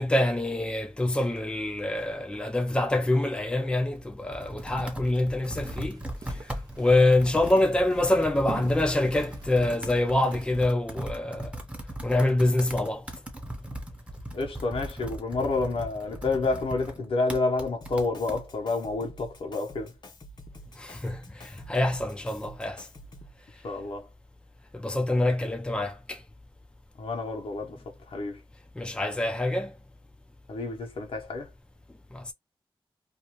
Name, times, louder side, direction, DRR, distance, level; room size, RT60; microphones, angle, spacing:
voice 1, 0.0-6.0 6.3-11.6 12.0-13.1 20.8-22.9 24.7-26.2 28.8-29.7 32.1-32.3, left 1 dB, 10° left, 0.5 m, -26 dB
Computer keyboard, 3.8-18.4, right 1 dB, 15° right, 0.9 m, -39 dB
sound 1, 5.5-10.7, right 4 dB, 40° right, 0.5 m, -44 dB
voice 2, 14.3-19.9 23.6-24.1 27.0-27.8 28.1-28.4 30.5-31.5, left 3 dB, 75° left, 1.0 m, -29 dB
Drum kit, 17.8-23.4, equal, 50° left, 0.8 m, -48 dB
2.6 x 2.4 x 2.9 m
wide cardioid pair, 95°, 10 cm